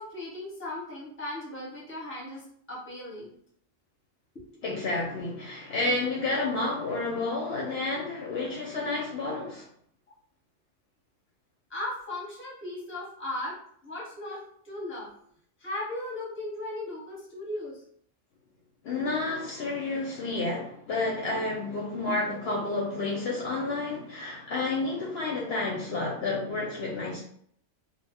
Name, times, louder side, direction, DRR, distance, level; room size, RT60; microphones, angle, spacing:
voice 1, 0.0-3.3 4.5-4.6 11.7-13.5 13.8-15.1 15.6-17.8 22.1-22.2, left 1 dB, 10° left, -6 dB, 0.8 m, -37 dB
voice 2, 4.6-9.7 18.8-27.2, left 3 dB, 65° left, -3 dB, 0.8 m, -30 dB
2.1 x 2.1 x 3.3 m, 0.65 s
omnidirectional pair, 1.2 m